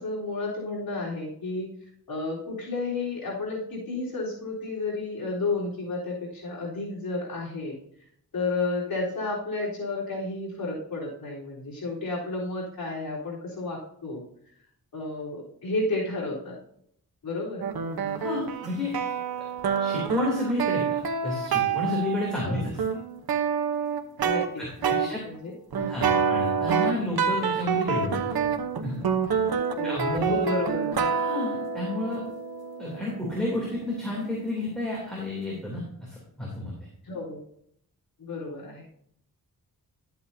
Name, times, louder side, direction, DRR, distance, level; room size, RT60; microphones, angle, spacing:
voice 1, 0.0-1.7 2.1-7.8 8.3-14.2 14.9-16.6 17.2-17.6 22.4-22.7 24.2-24.9 25.2-25.9 29.7-31.1 37.0-37.4 38.2-38.9, left 3 dB, 75° left, -5 dB, 3.9 m, -32 dB
sound 1, 17.6-24.5 24.8-25.1 25.7-34.8, right 6 dB, 80° right, 1.0 m, -28 dB
voice 2, 18.0-18.9 19.8-22.8 24.6-25.2 25.8-28.5 28.8-29.0 29.8-30.5 31.1-32.2 32.8-36.7, left 1 dB, ahead, -5 dB, 3.1 m, -31 dB
12.5 x 8.3 x 2.7 m, 0.68 s
wide cardioid pair, 135°, 36 cm